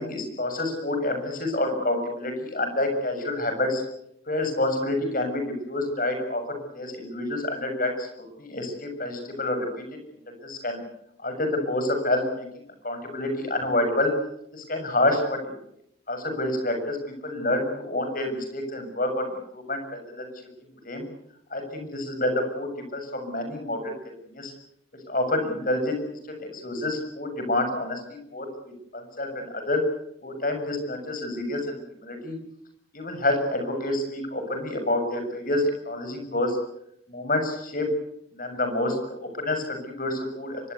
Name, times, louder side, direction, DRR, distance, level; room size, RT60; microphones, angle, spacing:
voice 1, 0.0-3.8 4.3-6.4 6.7-8.1 8.4-9.8 10.4-10.8 11.2-12.5 12.8-14.1 14.5-15.5 16.1-17.0 17.2-19.3 19.5-20.3 20.8-21.0 21.5-23.9 24.3-24.5 25.1-26.0 26.3-28.5 28.9-29.8 30.2-32.4 32.9-36.6 37.1-37.9 38.3-40.6, left 1 dB, 45° left, 5 dB, 6.9 m, -28 dB
24.5 x 21.5 x 8.3 m, 0.75 s
head